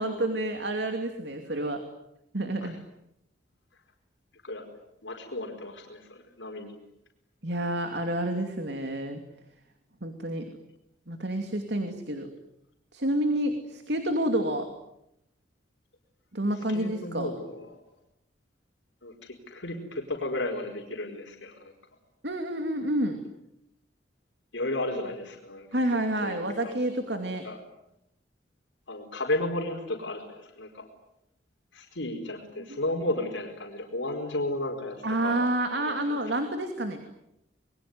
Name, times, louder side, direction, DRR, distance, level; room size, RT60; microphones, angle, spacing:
voice 1, 0.0-1.8 2.3-2.8 7.4-9.2 10.0-10.4 11.1-12.3 12.9-14.7 16.3-17.3 22.2-23.2 25.7-27.4 32.7-32.8 35.0-37.0, right 1 dB, 65° right, 6 dB, 2.7 m, -29 dB
voice 2, 5.0-6.7 16.7-17.8 19.0-21.7 24.5-25.7 26.2-26.7 27.4-27.6 28.9-30.8 31.7-35.0 35.2-35.4 35.8-36.2, left 1 dB, 90° left, 2 dB, 4.8 m, -33 dB
27.5 x 22.0 x 9.5 m, 0.83 s
head